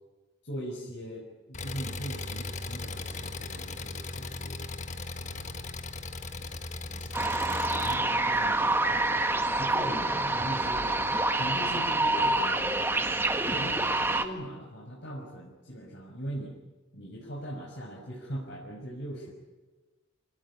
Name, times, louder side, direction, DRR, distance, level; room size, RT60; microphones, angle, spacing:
voice 1, 0.4-4.6 5.1-5.6 6.3-9.2 9.6-11.0 11.3-12.7 13.5-13.8 14.2-16.5 16.9-19.3, equal, 60° left, -3 dB, 5.8 m, -40 dB
Engine, 1.5-7.9, left 3 dB, 35° left, 1.5 m, -38 dB
sound 1, 7.1-14.2, right 2 dB, 10° right, 1.5 m, -27 dB
27.5 x 18.5 x 9.9 m, 1.2 s
head